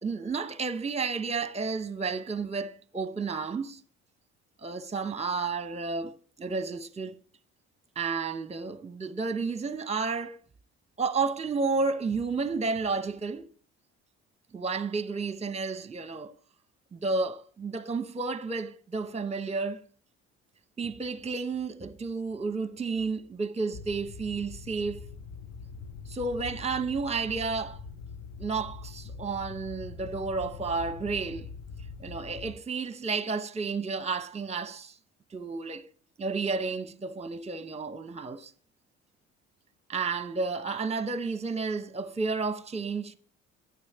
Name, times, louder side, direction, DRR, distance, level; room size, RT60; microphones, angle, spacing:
voice 1, 0.0-3.8 4.6-7.2 8.0-10.4 11.0-13.5 14.5-16.3 16.9-19.8 20.8-25.0 26.1-27.8 28.4-31.5 32.0-34.9 35.3-35.9 36.2-38.5 39.9-43.2, right 4 dB, 20° right, 0.9 m, -31 dB
sound 1, 23.7-32.5, left 5 dB, 50° left, 1.0 m, -43 dB
9.9 x 6.9 x 6.9 m
hypercardioid pair, 55°, 33 cm